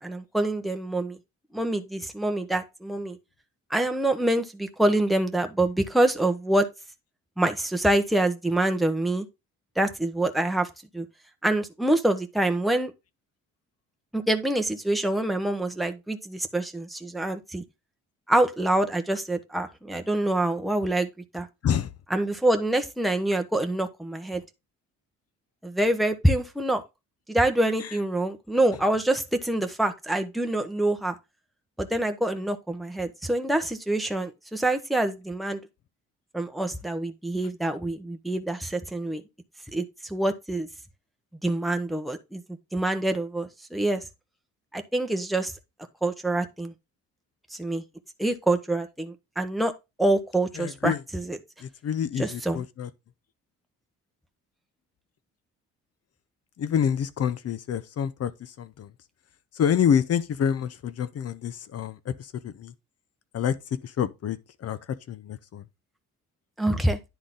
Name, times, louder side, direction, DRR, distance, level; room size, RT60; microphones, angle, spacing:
voice 1, 0.0-1.2 1.5-3.2 3.7-6.7 7.4-9.2 9.8-11.1 11.4-12.9 14.1-17.6 18.3-21.5 22.1-24.4 25.6-26.8 27.3-31.1 31.8-35.6 36.3-39.2 39.7-40.7 41.4-42.4 42.7-44.0 44.7-45.5 46.0-46.7 47.5-47.8 48.2-49.7 50.0-51.4 52.2-52.6 66.6-67.0, right 1 dB, ahead, 1.0 m, -26 dB
voice 2, 50.6-51.0 51.6-52.9 56.6-58.3 58.6-58.9 59.6-62.1 62.4-62.7 63.3-63.5 64.0-64.8 65.1-65.6, left 8 dB, 55° left, 0.8 m, -27 dB
10.0 x 3.9 x 3.8 m
cardioid pair, 90°, 30 cm